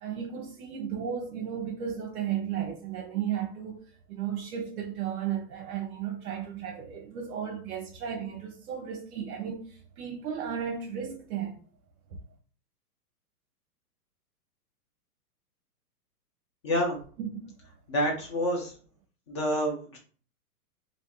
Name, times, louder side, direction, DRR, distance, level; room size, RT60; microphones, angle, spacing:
voice 1, 0.0-11.6 12.1-12.2 17.2-17.5, right 8 dB, 65° right, 0.7 m, -34 dB
voice 2, 16.6-17.0 17.9-18.7 19.3-20.0, equal, 20° left, 0.3 m, -28 dB
2.6 x 2.5 x 2.3 m
hypercardioid pair, 125°, 47 cm